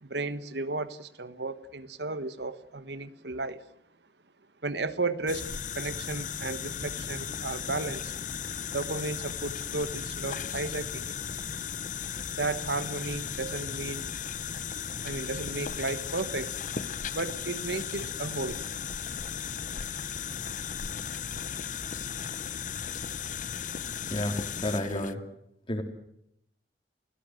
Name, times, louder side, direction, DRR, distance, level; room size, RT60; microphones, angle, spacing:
voice 1, 0.0-3.6 4.6-5.5 5.7-8.1 8.7-11.2 12.2-14.1 15.0-16.5 17.1-18.6, right 3 dB, 70° right, 14 dB, 1.3 m, -34 dB
sound 1, 5.3-25.1, left 7 dB, 45° left, 0.8 m, -36 dB
voice 2, 24.1-25.2 25.7-25.8, left 1 dB, 30° left, 5 dB, 3.7 m, -31 dB
30.0 x 17.0 x 7.8 m, 0.75 s
head